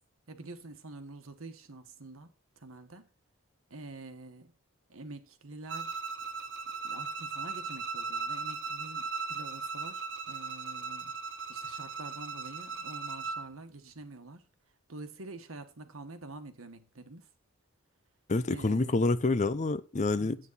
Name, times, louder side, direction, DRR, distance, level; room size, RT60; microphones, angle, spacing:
voice 1, 0.3-3.1 3.7-4.5 4.9-6.0 6.8-14.5 14.9-17.3 18.5-19.0 20.2-20.4, right 2 dB, 85° right, 1.4 m, -47 dB
Bowed string instrument, 5.7-13.5, right 4 dB, 60° right, 1.0 m, -38 dB
voice 2, 18.3-20.4, left 3 dB, 35° left, 0.6 m, -27 dB
9.4 x 8.7 x 4.1 m
head